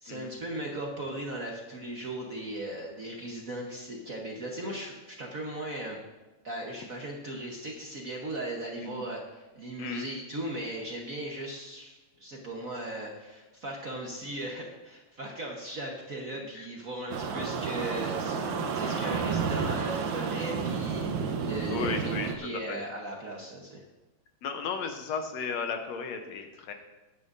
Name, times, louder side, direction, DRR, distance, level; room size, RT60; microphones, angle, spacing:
voice 1, 0.0-6.0 6.4-18.4 18.7-23.8, right 1 dB, 55° right, -1 dB, 0.9 m, -38 dB
voice 2, 16.4-16.7 21.7-22.8 24.4-26.7, left 5 dB, 70° left, 5 dB, 2.1 m, -35 dB
sound 1, 17.1-22.4, right 5 dB, 85° right, 2.3 m, -31 dB
18.5 x 9.8 x 2.7 m, 1.1 s
omnidirectional pair, 3.3 m